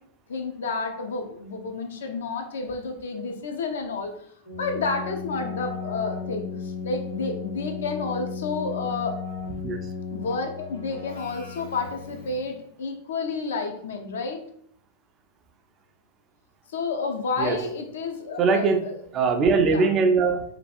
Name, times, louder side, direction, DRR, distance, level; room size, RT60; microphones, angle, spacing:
voice 1, 0.3-4.1 4.6-9.2 10.1-14.4 16.7-18.9 19.7-19.9, left 4 dB, 65° left, 5 dB, 0.4 m, -30 dB
Keyboard (musical), 4.5-12.6, left 5 dB, 90° left, 1.2 m, -35 dB
voice 2, 18.4-18.8 19.1-20.4, right 4 dB, 30° right, 5 dB, 0.3 m, -21 dB
2.5 x 2.2 x 2.4 m, 0.66 s
figure-of-eight pair, 90°, 0 cm